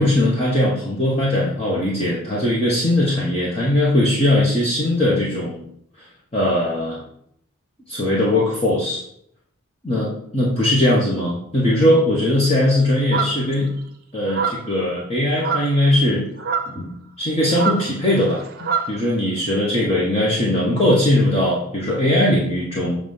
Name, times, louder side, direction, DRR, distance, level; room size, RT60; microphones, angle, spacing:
voice 1, 0.0-5.6 6.0-6.1 6.3-7.0 7.9-9.0 9.8-13.7 14.1-16.3 16.7-16.9 17.2-18.4 18.9-23.0, left 1 dB, 25° left, -5 dB, 1.3 m, -19 dB
sound 1, 13.1-13.5 14.3-14.7 15.3-15.8 16.4-16.8 17.5-19.0, right 5 dB, 45° right, 0.7 m, -25 dB
7.2 x 3.5 x 5.5 m, 0.69 s
head